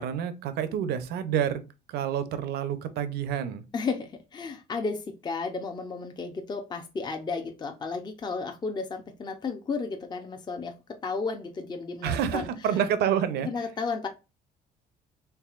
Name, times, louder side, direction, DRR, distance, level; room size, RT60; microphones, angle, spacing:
voice 1, 0.0-1.6 1.9-3.6 12.0-13.5, right 9 dB, 75° right, 0.6 m, -28 dB
voice 2, 3.7-12.5 13.4-14.1, left 4 dB, 25° left, 0.6 m, -33 dB
4.6 x 3.3 x 2.4 m
cardioid pair, 110°, 17 cm